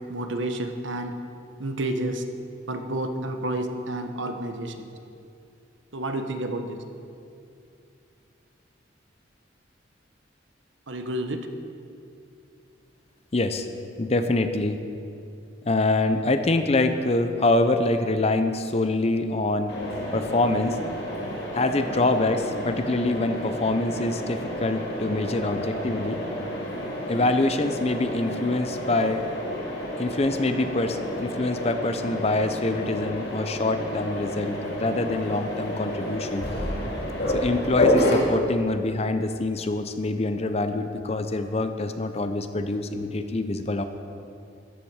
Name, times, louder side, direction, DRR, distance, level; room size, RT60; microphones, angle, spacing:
voice 1, 0.1-1.1 1.6-2.2 2.7-4.9 5.9-6.8 10.9-11.5, right 1 dB, 70° right, 6 dB, 1.0 m, -30 dB
voice 2, 13.3-13.7 14.0-14.8 15.6-19.7 20.1-20.8 21.5-26.2 27.1-29.2 30.0-36.5 37.3-43.8, left 2 dB, 30° left, 8 dB, 0.6 m, -25 dB
Mechanisms, 19.7-38.2, left 1 dB, 55° left, 2.6 m, -30 dB
14.0 x 10.5 x 4.8 m, 2.6 s
head